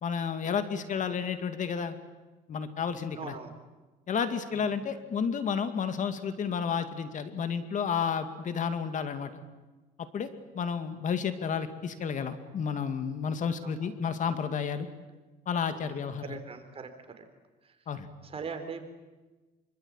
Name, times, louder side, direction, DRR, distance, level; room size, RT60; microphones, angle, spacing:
voice 1, 0.0-2.0 2.5-3.3 4.1-9.3 10.1-10.3 10.5-14.9 15.5-16.2 17.9-18.1, left 6 dB, 50° left, 9 dB, 2.4 m, -31 dB
voice 2, 3.1-3.6 4.5-4.7 10.9-11.1 13.6-13.9 15.7-17.2 17.6-18.8, right 5 dB, 35° right, 7 dB, 4.1 m, -43 dB
26.0 x 24.5 x 9.0 m, 1.2 s
cardioid pair, 110°, 17 cm